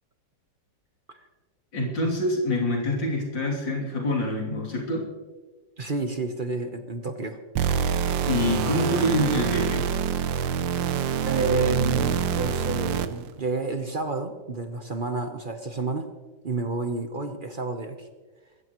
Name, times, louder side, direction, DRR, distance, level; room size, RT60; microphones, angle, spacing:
voice 1, 1.7-5.1 8.3-9.9, left 1 dB, 85° left, -2 dB, 3.8 m, -26 dB
voice 2, 5.8-7.4 8.6-8.8 11.2-16.1 16.4-18.1, right 3 dB, 35° right, 6 dB, 0.9 m, -30 dB
sound 1, 7.6-13.3, right 7 dB, 85° right, 1.5 m, -26 dB
22.0 x 15.0 x 3.1 m, 1.3 s
omnidirectional pair, 2.0 m